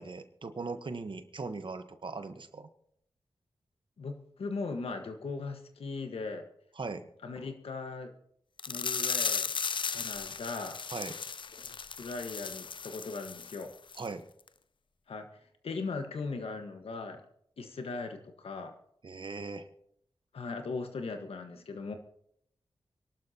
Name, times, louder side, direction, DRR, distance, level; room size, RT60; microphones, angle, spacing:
voice 1, 0.0-2.7 6.8-7.0 10.9-11.2 14.0-14.2 19.0-19.7, right 4 dB, 55° right, 9 dB, 1.2 m, -39 dB
voice 2, 4.0-6.4 7.2-8.1 8.7-9.5 9.9-10.8 11.6-13.7 15.1-15.3 15.6-17.2 17.6-18.7 20.3-21.9, left 3 dB, 80° left, 6 dB, 1.5 m, -38 dB
sound 1, 8.6-13.6 13.9-14.1 14.5-14.6, left 5 dB, 55° left, 0.5 m, -35 dB
24.5 x 12.0 x 2.9 m, 0.70 s
cardioid pair, 45°, 10 cm